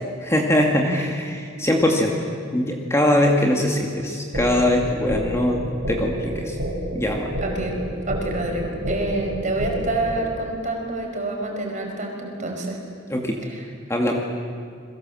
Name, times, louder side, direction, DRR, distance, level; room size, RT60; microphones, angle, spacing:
voice 1, 0.3-2.3 2.5-5.6 5.9-6.6 6.9-7.3 13.1-13.4 13.9-14.2, left 1 dB, 15° left, 1 dB, 2.2 m, -21 dB
sound 1, 4.3-10.3, right 1 dB, 80° right, 4.9 m, -29 dB
voice 2, 7.4-7.8 8.1-12.8 13.5-13.6, right 2 dB, 40° right, 2 dB, 5.2 m, -27 dB
29.5 x 22.5 x 7.7 m, 2.2 s
head